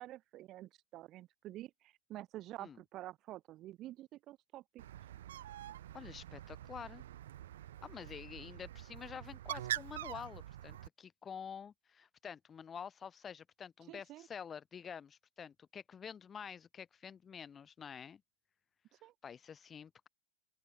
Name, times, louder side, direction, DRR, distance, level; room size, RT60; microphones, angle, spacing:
voice 1, 0.0-4.8 13.9-14.3 19.0-19.1, right 15 dB, 30° right, 4.1 m, -49 dB
Bird, 4.8-10.9, right 12 dB, 85° right, 2.1 m, -45 dB
voice 2, 5.9-7.0 7.8-18.2 19.2-20.1, left 7 dB, 15° left, 5.5 m, -48 dB
open air
supercardioid pair, 170°, 0 cm